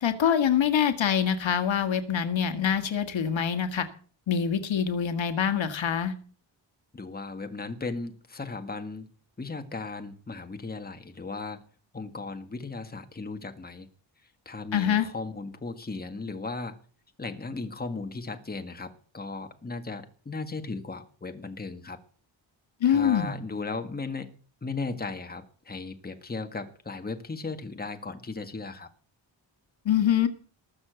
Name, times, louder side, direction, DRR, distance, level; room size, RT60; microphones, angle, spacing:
voice 1, 0.0-3.9 4.3-6.1 14.7-15.1 22.8-23.3 29.9-30.3, left 8 dB, 75° left, 8 dB, 1.8 m, -25 dB
voice 2, 6.9-9.1 9.4-11.6 11.9-13.9 14.5-16.8 17.2-22.0 22.9-24.3 24.6-28.9, left 3 dB, 20° left, 6 dB, 1.8 m, -36 dB
20.0 x 7.1 x 8.0 m, 0.42 s
wide cardioid pair, 140°, 46 cm